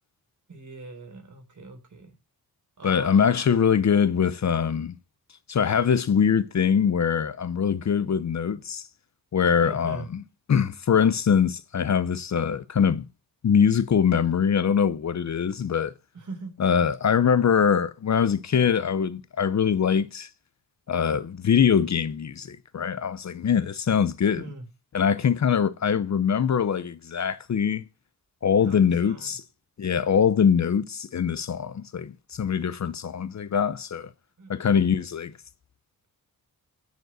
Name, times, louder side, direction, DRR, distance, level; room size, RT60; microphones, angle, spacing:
voice 1, 0.5-2.1 2.8-3.5 9.6-10.1 16.1-16.5 24.3-24.7 28.6-29.4 34.4-34.5, right 3 dB, 50° right, 3.8 m, -41 dB
voice 2, 2.8-5.0 5.5-8.9 9.3-10.2 10.5-13.0 13.4-15.9 16.6-20.3 20.9-24.4 24.9-27.8 28.4-29.4 29.8-34.1 34.5-35.3, left 7 dB, 45° left, 0.7 m, -23 dB
9.3 x 5.2 x 7.5 m
wide cardioid pair, 130°, 37 cm